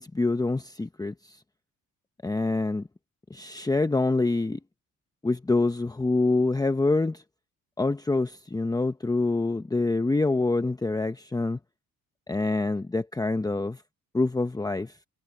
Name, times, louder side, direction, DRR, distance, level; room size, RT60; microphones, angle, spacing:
voice 1, 0.0-1.4 2.2-2.9 3.3-4.6 5.2-7.2 7.8-11.6 12.3-13.8 14.1-14.9, left 3 dB, 10° left, 0.9 m, -26 dB
cardioid pair, 90°, 30 cm